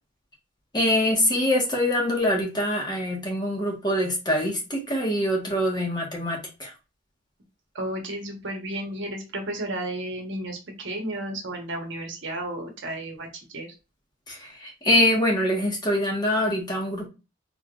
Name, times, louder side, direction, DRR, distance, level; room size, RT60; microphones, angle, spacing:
voice 1, 0.7-6.7 14.3-17.1, left 1 dB, 20° left, -1 dB, 1.4 m, -24 dB
voice 2, 7.7-13.7, right 1 dB, 65° right, 3 dB, 1.1 m, -33 dB
3.8 x 3.7 x 2.4 m, 0.29 s
head